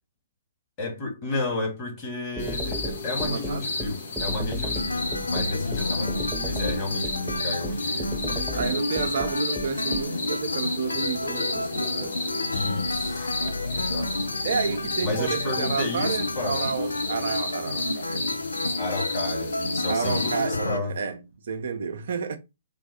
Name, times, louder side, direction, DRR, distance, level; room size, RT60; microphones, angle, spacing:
voice 1, 0.8-8.6 12.5-13.3 13.7-14.3 15.0-16.6 18.8-21.0, left 2 dB, 30° left, 1.7 m, -32 dB
sound 1, 2.4-20.5, left 3 dB, 60° left, 1.0 m, -32 dB
sound 2, 2.4-10.0, right 1 dB, ahead, 0.5 m, -34 dB
voice 2, 3.2-3.7 8.5-12.2 13.4-13.5 14.4-18.3 18.7-18.8 19.9-22.4, right 6 dB, 55° right, 0.5 m, -30 dB
sound 3, 4.7-20.8, left 2 dB, 80° left, 0.4 m, -31 dB
3.7 x 2.2 x 4.1 m
figure-of-eight pair, 120°, 0 cm